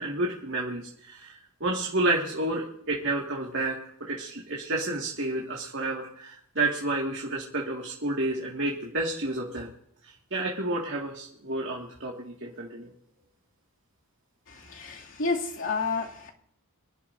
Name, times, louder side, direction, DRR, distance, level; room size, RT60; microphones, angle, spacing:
voice 1, 0.0-1.4 1.6-3.8 4.1-9.7 10.3-12.9, right 2 dB, 55° right, -2 dB, 2.1 m, -30 dB
voice 2, 14.5-16.3, left 4 dB, 60° left, -2 dB, 2.6 m, -30 dB
25.5 x 12.0 x 2.7 m, 0.71 s
head